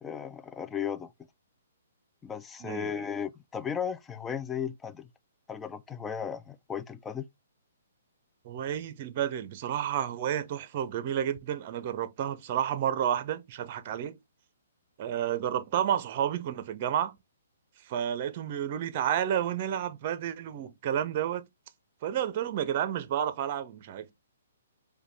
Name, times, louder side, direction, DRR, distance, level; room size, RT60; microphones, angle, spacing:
voice 1, 0.0-1.1 2.2-5.1 5.5-7.3, left 7 dB, 10° left, 0.3 m, -35 dB
voice 2, 2.6-3.0 8.4-14.2 15.0-17.2 17.9-21.5 22.0-24.1, right 10 dB, 40° right, 0.6 m, -31 dB
5.1 x 2.3 x 3.2 m
hypercardioid pair, 150°, 0 cm